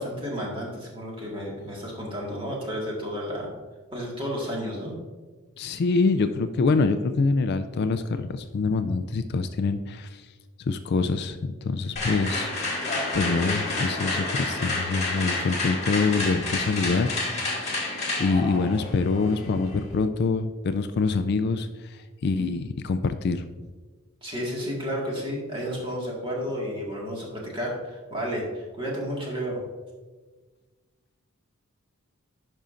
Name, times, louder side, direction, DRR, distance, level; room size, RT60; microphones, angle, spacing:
voice 1, 0.0-3.5 3.9-4.9 24.2-29.6, equal, 25° right, -3 dB, 1.7 m, -32 dB
voice 2, 5.6-10.2 10.7-12.5 13.1-17.7 18.2-23.4, left 4 dB, 50° left, 10 dB, 0.3 m, -25 dB
sound 1, 12.0-19.9, left 2 dB, 30° left, 1.7 m, -29 dB
10.5 x 5.4 x 2.5 m, 1.4 s
head